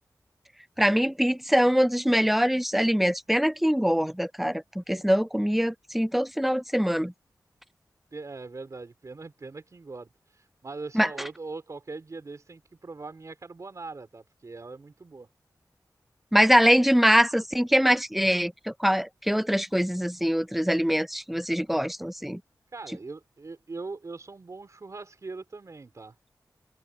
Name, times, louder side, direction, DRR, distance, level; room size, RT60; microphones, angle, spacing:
voice 1, 0.8-7.1 10.9-11.1 16.3-22.4, equal, ahead, 0.4 m, -23 dB
voice 2, 8.1-15.3 22.7-26.1, right 3 dB, 50° right, 4.3 m, -41 dB
wide cardioid pair, 100°, 7 cm